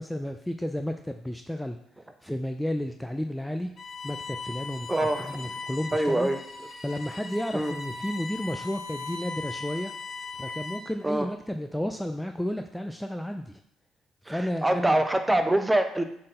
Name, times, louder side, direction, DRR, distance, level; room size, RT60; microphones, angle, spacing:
voice 1, 0.0-3.7 4.0-4.9 5.2-6.3 6.8-9.9 10.4-13.6 14.3-15.0, equal, 5° left, 6 dB, 0.5 m, -32 dB
Bowed string instrument, 3.8-11.0, left 4 dB, 45° left, 0.9 m, -39 dB
voice 2, 4.9-5.3 5.9-6.4 7.5-7.7 11.0-11.3 14.3-16.0, right 1 dB, 15° right, 7 dB, 0.9 m, -24 dB
7.4 x 4.0 x 3.9 m, 0.75 s
hypercardioid pair, 50°, 0 cm